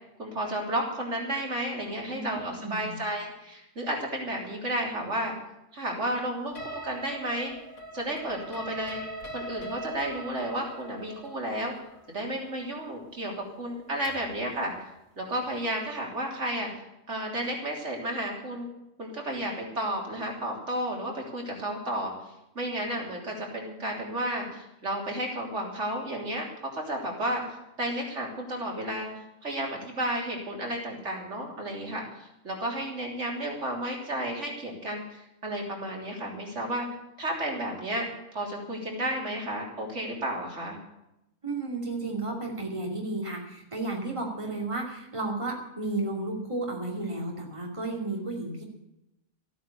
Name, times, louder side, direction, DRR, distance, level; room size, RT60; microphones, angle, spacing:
voice 1, 0.2-5.3 5.7-7.5 7.9-9.0 9.3-11.8 12.1-14.7 15.2-16.7 17.1-18.7 19.0-22.1 22.6-26.5 26.7-36.9 37.2-40.8, right 1 dB, 75° right, -1 dB, 3.7 m, -32 dB
voice 2, 2.0-2.9 41.4-48.6, right 2 dB, 25° right, 0 dB, 2.9 m, -33 dB
sound 1, 6.6-14.4, right 1 dB, 85° left, 2.3 m, -42 dB
14.5 x 9.3 x 8.3 m, 0.87 s
omnidirectional pair, 1.2 m